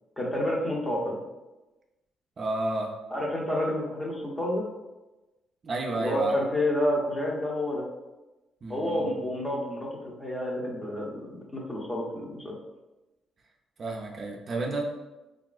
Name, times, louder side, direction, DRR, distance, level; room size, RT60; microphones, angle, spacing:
voice 1, 0.2-1.2 3.1-4.6 5.9-7.8 8.7-12.6, left 1 dB, 15° left, -3 dB, 0.7 m, -29 dB
voice 2, 2.4-2.9 5.6-6.4 8.6-9.3 13.8-14.8, right 2 dB, 45° right, 1 dB, 0.4 m, -31 dB
3.4 x 2.4 x 2.3 m, 1.1 s
cardioid pair, 90°, 0 cm